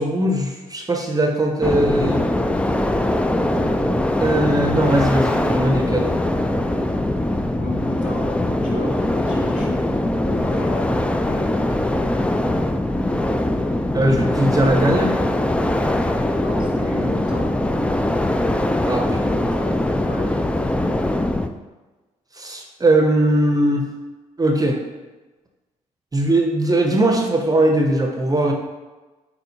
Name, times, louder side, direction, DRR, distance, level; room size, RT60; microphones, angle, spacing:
voice 1, 0.0-2.3 3.5-3.6 4.2-6.1 13.9-15.1 18.9-19.4 22.4-23.9 24.4-24.8 26.1-28.5, right 1 dB, 20° right, 2 dB, 0.8 m, -19 dB
sound 1, 1.6-21.5, left 1 dB, 5° left, 0.4 m, -21 dB
voice 2, 7.6-9.8 10.3-10.9 11.2-11.8 16.3-17.5 19.1-20.4, left 1 dB, 45° left, -4 dB, 2.0 m, -33 dB
7.8 x 4.4 x 2.8 m, 1.2 s
figure-of-eight pair, 45°, 17 cm